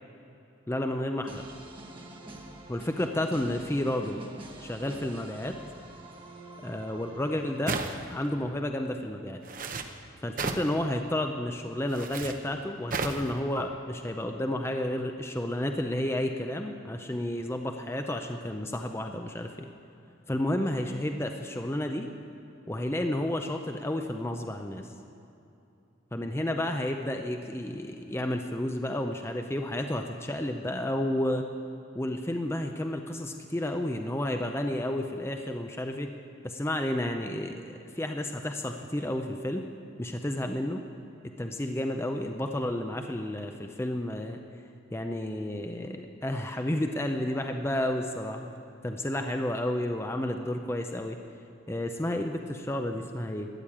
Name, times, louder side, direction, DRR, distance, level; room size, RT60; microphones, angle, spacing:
voice 1, 0.7-1.4 2.7-4.2 4.6-5.6 6.6-7.8 8.1-9.4 10.2-19.7 20.3-22.1 22.7-24.9 26.1-31.5 31.9-36.1 36.4-39.6 40.0-40.8 41.4-44.4 44.9-48.5 48.8-51.2 51.7-53.5, left 1 dB, 10° left, 5 dB, 0.5 m, -31 dB
sound 1, 1.3-8.2, right 2 dB, 25° right, 1.1 m, -47 dB
sound 2, 7.7-8.2 9.4-9.9 10.4-10.7 11.9-12.3 12.9-13.3, right 4 dB, 40° right, 0.8 m, -33 dB
13.0 x 9.2 x 8.6 m, 2.8 s
head